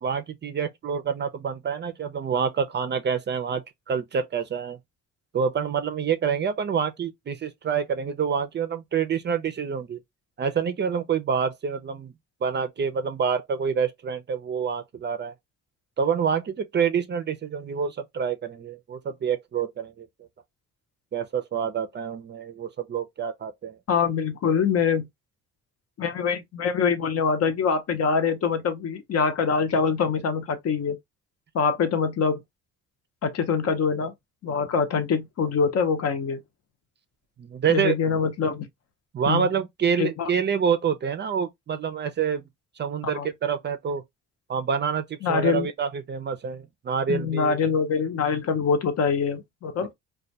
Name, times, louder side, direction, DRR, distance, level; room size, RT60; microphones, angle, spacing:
voice 1, 0.0-4.8 5.3-10.0 10.4-12.1 12.4-15.3 16.0-20.1 21.1-23.8 37.4-37.9 39.1-42.4 42.8-44.0 44.5-47.6, right 7 dB, 35° right, 0.4 m, -27 dB
voice 2, 23.9-25.1 26.0-31.0 31.5-32.4 33.2-34.1 34.4-36.4 37.7-38.7 39.3-39.5 40.0-40.3 43.1-43.3 45.2-45.7 47.1-49.9, left 5 dB, 55° left, 0.7 m, -24 dB
2.2 x 2.1 x 2.7 m
cardioid pair, 90°, 30 cm